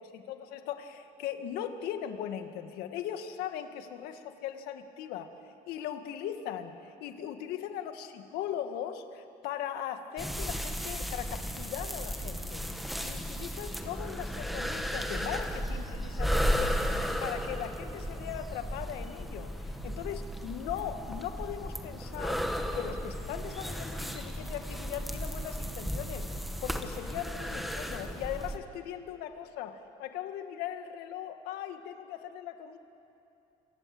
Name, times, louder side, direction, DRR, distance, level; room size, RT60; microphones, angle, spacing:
voice 1, 0.0-5.3 5.7-12.7 13.0-16.8 17.2-22.4 22.7-26.3 26.6-32.8, left 10 dB, 85° left, 7 dB, 2.0 m, -39 dB
sound 1, 10.2-28.6, equal, ahead, 1.4 m, -34 dB
28.0 x 26.5 x 7.9 m, 2.9 s
cardioid pair, 155°, 16 cm